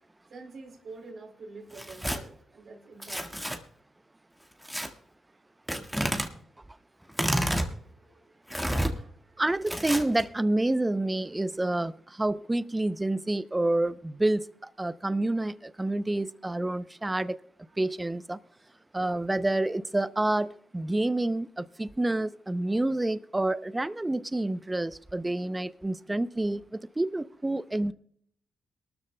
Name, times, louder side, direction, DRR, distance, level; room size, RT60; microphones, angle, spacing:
voice 1, 0.2-3.5 5.3-5.4 7.6-8.4 8.9-9.4, right 3 dB, 65° right, 2.8 m, -48 dB
Tearing, 1.7-2.2 3.0-3.6 4.6-4.9 5.7-6.3 7.1-7.7 8.5-8.9 9.7-10.2, equal, ahead, 1.6 m, -29 dB
voice 2, 9.4-17.4 17.8-18.4 18.9-27.9, right 2 dB, 15° right, 0.5 m, -28 dB
22.5 x 13.0 x 2.2 m
cardioid pair, 75°, 0 cm